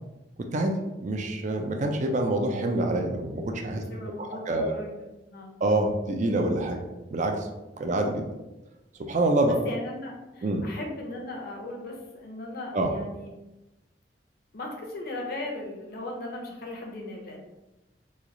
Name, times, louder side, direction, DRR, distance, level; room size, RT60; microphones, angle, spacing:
voice 1, 0.4-0.7 1.0-3.8 4.2-4.7 5.6-6.8 7.1-7.5 7.8-8.2 9.0-9.6 10.4-10.6 12.7-12.9, right 2 dB, 45° right, 4 dB, 0.4 m, -26 dB
voice 2, 3.9-5.5 7.8-7.9 9.5-13.3 14.5-17.4, left 2 dB, 60° left, 0 dB, 0.8 m, -38 dB
3.1 x 2.3 x 3.8 m, 1.0 s
head